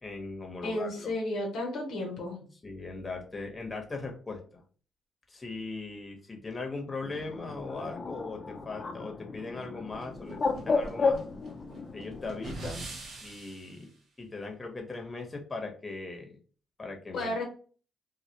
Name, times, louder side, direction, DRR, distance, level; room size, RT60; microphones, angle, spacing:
voice 1, 0.0-1.1 2.6-4.6 5.3-10.4 10.6-11.2 11.9-12.9 13.2-16.4 16.8-17.4, left 3 dB, 30° left, 2 dB, 0.8 m, -39 dB
voice 2, 0.6-2.4 17.1-17.4, left 1 dB, 80° left, 0 dB, 0.7 m, -32 dB
Bird, 7.0-12.5, left 4 dB, 50° left, 0.4 m, -33 dB
sound 1, 9.9-13.8, right 2 dB, 65° right, 0.7 m, -43 dB
2.2 x 2.1 x 2.8 m, 0.39 s
supercardioid pair, 55°, 0 cm